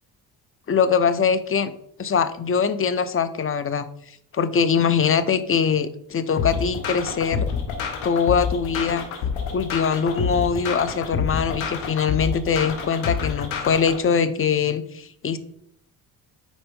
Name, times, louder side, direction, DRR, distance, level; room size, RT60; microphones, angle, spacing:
voice 1, 0.7-1.7 2.0-3.9 4.3-7.5 8.0-9.1 9.5-15.4, left 6 dB, 30° left, 13 dB, 0.6 m, -22 dB
sound 1, 6.4-14.0, left 6 dB, 85° left, 1.1 m, -28 dB
4.5 x 4.2 x 5.2 m, 0.70 s
hypercardioid pair, 55°, 48 cm